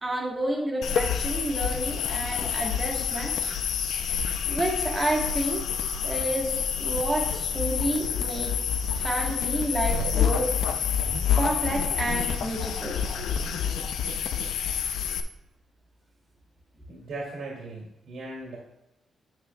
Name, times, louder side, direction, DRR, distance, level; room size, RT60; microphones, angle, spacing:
voice 1, 0.0-3.5 4.5-5.6 6.0-6.5 6.8-8.5 9.0-10.5 11.3-13.0, right 1 dB, 20° right, -1 dB, 1.3 m, -30 dB
sound 1, 0.8-15.2, left 7 dB, 85° left, 0.5 m, -28 dB
voice 2, 16.9-18.6, right 2 dB, 75° right, -4 dB, 2.1 m, -38 dB
9.1 x 7.9 x 2.3 m, 0.95 s
wide cardioid pair, 155°, 0 cm